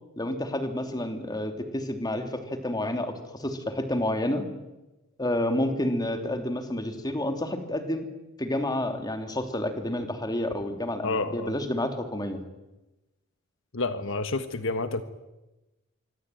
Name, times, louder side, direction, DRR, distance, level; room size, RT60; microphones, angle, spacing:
voice 1, 0.2-4.4 5.2-8.1 8.4-12.4, left 1 dB, 20° left, 6 dB, 3.0 m, -29 dB
voice 2, 11.0-11.5 13.7-15.0, left 3 dB, 65° left, 9 dB, 1.5 m, -29 dB
25.5 x 24.5 x 9.3 m, 1.0 s
head